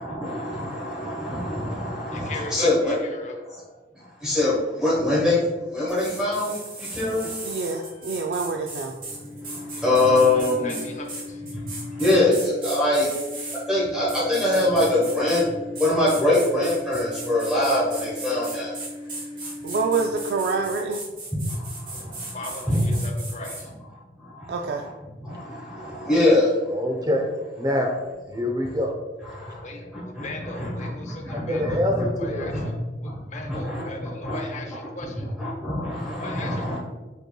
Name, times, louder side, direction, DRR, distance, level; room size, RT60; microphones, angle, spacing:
voice 1, 0.0-3.0 3.9-7.8 9.4-10.8 11.5-13.1 13.7-15.5 15.8-18.8 21.3-22.4 22.6-23.0 24.1-24.9 25.2-26.6 28.3-28.7 29.2-29.6 29.9-30.3 30.5-32.0 32.4-32.6 33.0-34.4 35.0-36.8, left 1 dB, 5° right, -8 dB, 1.1 m, -24 dB
voice 2, 2.1-3.3 9.7-11.4 22.3-23.7 29.6-31.9 32.2-32.8 33.0-35.3 36.2-36.8, left 2 dB, 40° left, 2 dB, 0.6 m, -38 dB
sound 1, 5.9-13.6 14.1-15.4 15.7-23.6, right 3 dB, 50° right, 1.2 m, -37 dB
sound 2, 6.7-20.8, left 2 dB, 80° left, 1.3 m, -39 dB
voice 3, 7.4-8.9 19.6-21.0 24.5-24.8, right 4 dB, 65° right, 2 dB, 0.3 m, -26 dB
voice 4, 26.7-27.9 28.3-28.9 31.5-31.9 32.2-32.5, left 1 dB, 20° right, 3 dB, 0.6 m, -25 dB
5.2 x 4.4 x 2.3 m, 1.2 s
head